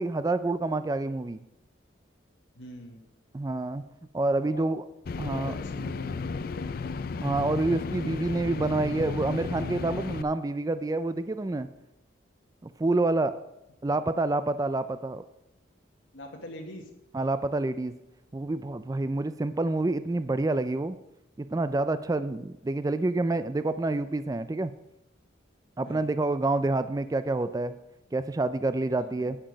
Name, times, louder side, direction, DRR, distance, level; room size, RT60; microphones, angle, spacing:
voice 1, 0.0-1.4 3.3-3.8 4.1-4.8 5.2-5.5 7.2-11.7 12.6-13.4 13.8-15.2 17.1-18.0 18.3-21.0 21.4-24.7 25.8-27.7 28.1-29.4, right 2 dB, 20° right, 12 dB, 0.3 m, -28 dB
voice 2, 2.5-3.0 4.4-4.7 5.2-6.7 16.1-16.9 25.8-26.1 29.0-29.3, left 1 dB, 85° left, 0 dB, 1.5 m, -43 dB
sound 1, 5.0-10.2, left 4 dB, 50° left, 0.4 m, -34 dB
9.6 x 8.9 x 5.1 m, 0.89 s
head